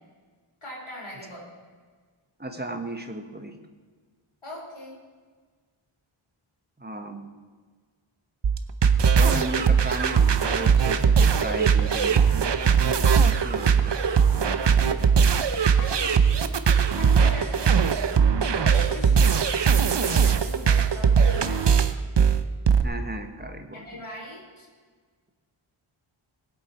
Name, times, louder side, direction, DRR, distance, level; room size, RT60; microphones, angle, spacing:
voice 1, 0.6-1.5 4.4-5.0 15.7-16.2 17.0-17.9 18.4-19.4 19.9-21.8 23.7-24.7, left 1 dB, 75° left, -3 dB, 5.0 m, -40 dB
voice 2, 2.4-3.6 6.8-7.3 9.1-12.4 13.4-14.0 19.0-19.2 22.8-23.8, right 1 dB, 20° right, 5 dB, 1.5 m, -34 dB
sound 1, 8.4-22.8, right 6 dB, 55° right, 0.8 m, -20 dB
21.5 x 7.9 x 4.6 m, 1.5 s
wide cardioid pair, 85°, 50 cm